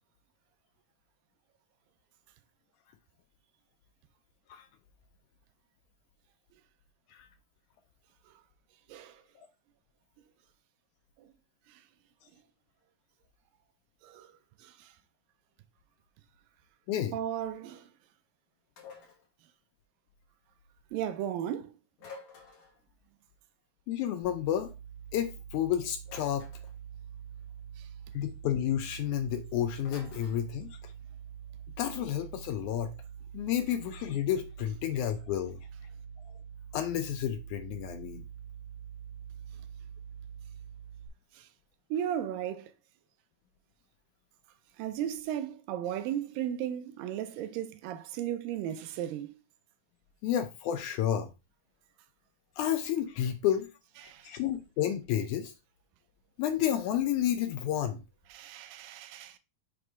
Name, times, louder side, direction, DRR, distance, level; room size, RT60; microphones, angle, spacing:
voice 1, 8.9-9.2 11.2-11.3 11.7-11.8 14.0-14.3 14.6-14.9 17.1-17.9 20.9-21.7 27.8-27.9 41.3-41.5 41.9-42.7 44.8-49.3 54.1-54.3 58.3-59.4, right 10 dB, 85° right, 2.4 m, -35 dB
sound 1, 18.8-19.3 22.0-22.8 26.1-26.8 29.9-30.4, left 4 dB, 55° left, 2.4 m, -50 dB
voice 2, 23.9-24.7 25.1-26.5 28.1-30.9 31.8-32.9 33.3-35.6 36.7-38.2 50.2-51.3 52.6-53.7 54.2-55.5 56.4-58.0, left 10 dB, 80° left, 1.9 m, -31 dB
sound 2, 24.2-41.1, right 8 dB, 45° right, 2.2 m, -46 dB
6.3 x 3.4 x 4.8 m
omnidirectional pair, 3.9 m